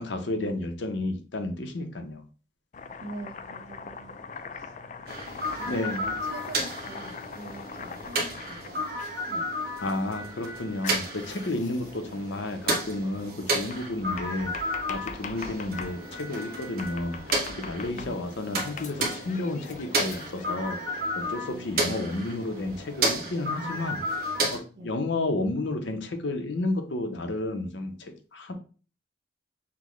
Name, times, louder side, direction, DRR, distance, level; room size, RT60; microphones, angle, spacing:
voice 1, 0.0-2.2 5.6-6.2 9.8-24.0 24.5-28.5, left 2 dB, 80° left, 6 dB, 0.7 m, -32 dB
Domestic sounds home sounds, 2.7-9.1 10.8-12.0 13.7-16.0 16.8-18.4 18.8-20.6, left 5 dB, 40° left, 0.3 m, -42 dB
voice 2, 3.0-4.2 4.5-4.7 5.5-5.8 6.3-9.5 17.9-18.2 21.4-22.2 24.7-24.9, right 1 dB, 75° right, -2 dB, 1.1 m, -44 dB
sound 1, 5.1-24.6, right 1 dB, 55° right, 1.0 m, -32 dB
5.9 x 2.2 x 3.0 m, 0.39 s
head